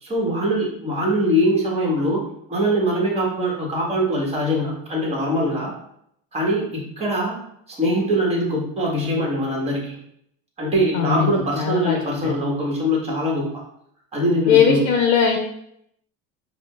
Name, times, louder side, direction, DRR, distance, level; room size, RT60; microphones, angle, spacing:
voice 1, 0.0-2.2 2.5-5.7 6.3-7.4 7.7-10.0 10.6-13.5 14.1-14.9, equal, 20° right, -2 dB, 1.1 m, -22 dB
voice 2, 10.9-12.3 14.5-15.4, left 7 dB, 65° left, 2 dB, 0.6 m, -19 dB
4.9 x 2.0 x 2.3 m, 0.73 s
supercardioid pair, 115°, 30 cm